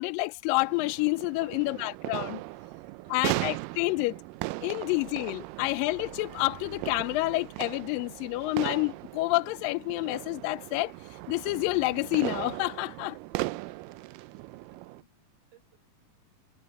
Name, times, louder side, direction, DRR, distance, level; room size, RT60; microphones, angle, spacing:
voice 1, 0.0-2.4 3.1-4.2 4.6-10.9 11.3-13.2, left 23 dB, 85° left, 2.2 m, -29 dB
sound 1, 0.6-15.0, right 21 dB, 80° right, 2.1 m, -38 dB
voice 2, 13.3-14.4 14.7-15.2 15.5-15.8, right 5 dB, 65° right, 7.6 m, -63 dB
omnidirectional pair, 4.0 m